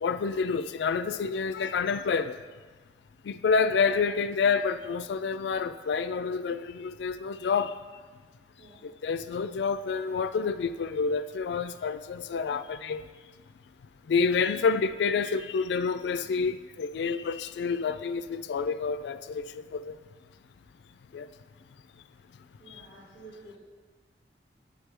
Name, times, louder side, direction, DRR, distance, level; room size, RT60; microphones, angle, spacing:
voice 1, 0.0-2.3 3.3-7.7 8.8-13.0 14.1-19.4 19.7-19.9 21.1-21.3, left 5 dB, 75° left, 12 dB, 0.3 m, -28 dB
voice 2, 22.6-23.6, right 2 dB, 45° right, -13 dB, 2.5 m, -50 dB
9.8 x 6.1 x 3.4 m, 1.5 s
head